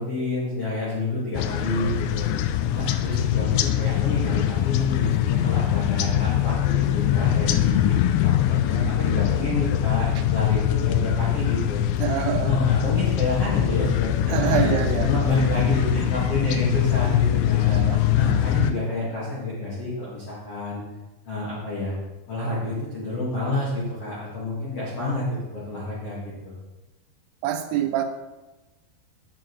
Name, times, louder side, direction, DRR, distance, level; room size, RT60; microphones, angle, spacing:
voice 1, 0.0-2.3 2.7-7.9 8.2-11.8 12.4-17.8 18.1-20.8 21.2-21.9 22.3-26.5, left 2 dB, 70° left, -7 dB, 1.4 m, -28 dB
sound 1, 1.3-18.7, left 12 dB, 90° left, 3.2 m, -23 dB
voice 2, 12.0-12.7 14.3-15.3 17.6-18.5 27.4-28.1, right 10 dB, 85° right, 7 dB, 3.3 m, -26 dB
8.9 x 7.9 x 3.1 m, 1.1 s
omnidirectional pair, 5.8 m